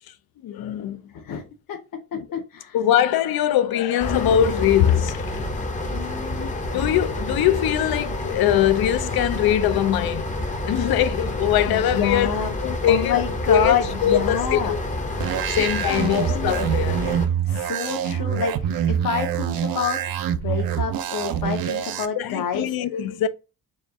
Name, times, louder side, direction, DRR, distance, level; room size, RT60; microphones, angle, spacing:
voice 1, 0.4-1.0 2.1-2.4 2.7-5.4 6.7-10.3 10.7-12.3 12.6-13.2 13.5-14.8 15.6-17.0 22.2-23.3, left 10 dB, 90° left, 0.5 m, -22 dB
voice 2, 2.3-2.8 5.9-6.5 11.7-12.5 12.9-14.8 15.5-15.6 15.9-16.7 17.5-18.5 18.9-20.0 20.4-22.7, left 7 dB, 65° left, 0.9 m, -27 dB
sound 1, 4.0-17.3, left 1 dB, 20° left, 0.6 m, -29 dB
sound 2, 15.2-22.0, right 9 dB, 75° right, 0.5 m, -25 dB
4.2 x 2.4 x 3.5 m
wide cardioid pair, 145°, 36 cm